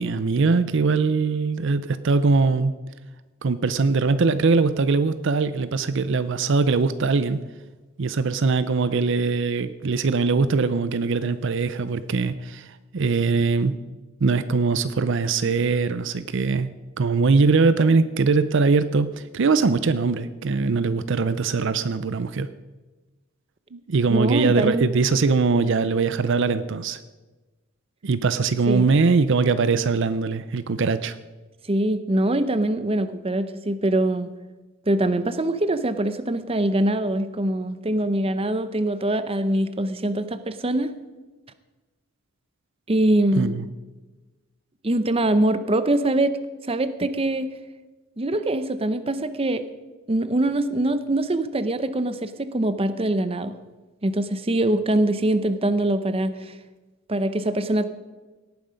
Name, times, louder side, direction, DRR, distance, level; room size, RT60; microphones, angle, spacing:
voice 1, 0.0-2.7 3.4-7.4 8.0-13.7 14.2-16.7 17.0-22.5 23.7-27.0 28.0-31.2 43.4-43.7, right 4 dB, 65° right, 13 dB, 0.5 m, -21 dB
voice 2, 24.1-24.9 25.5-25.7 28.7-28.8 31.7-34.3 34.9-40.9 42.9-43.6 44.8-46.3 46.7-47.5 48.2-49.6 50.1-53.5 54.0-56.5 57.1-57.9, right 1 dB, 30° right, 12 dB, 0.7 m, -23 dB
17.5 x 9.4 x 5.2 m, 1.2 s
head